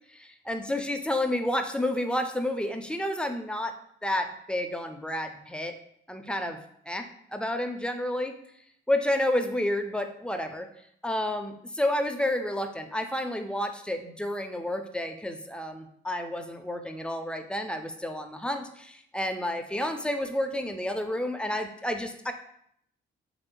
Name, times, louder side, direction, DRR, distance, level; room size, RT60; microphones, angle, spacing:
voice 1, 0.1-3.8 4.0-5.7 6.1-6.6 6.9-7.1 7.3-8.3 8.9-10.7 11.0-22.3, left 1 dB, 5° left, 6 dB, 0.3 m, -30 dB
3.4 x 2.5 x 3.6 m, 0.70 s
cardioid pair, 90°, 20 cm